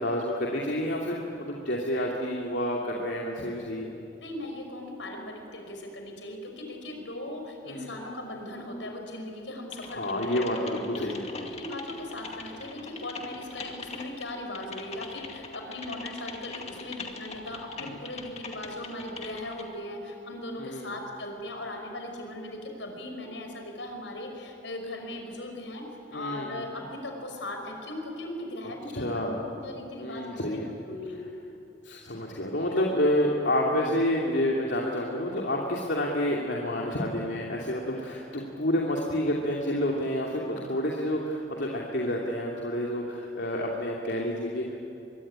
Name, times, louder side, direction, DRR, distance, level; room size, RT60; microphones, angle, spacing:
voice 1, 0.0-3.9 7.7-7.9 9.9-11.5 20.6-20.9 26.1-26.6 28.9-29.5 30.0-30.7 31.8-44.8, left 1 dB, 70° left, -2 dB, 2.7 m, -29 dB
voice 2, 4.2-10.4 10.9-31.2, left 1 dB, 85° left, 3 dB, 5.8 m, -38 dB
Typing, 9.7-19.6, left 4 dB, 35° left, 2.3 m, -42 dB
24.0 x 23.5 x 10.0 m, 2.8 s
head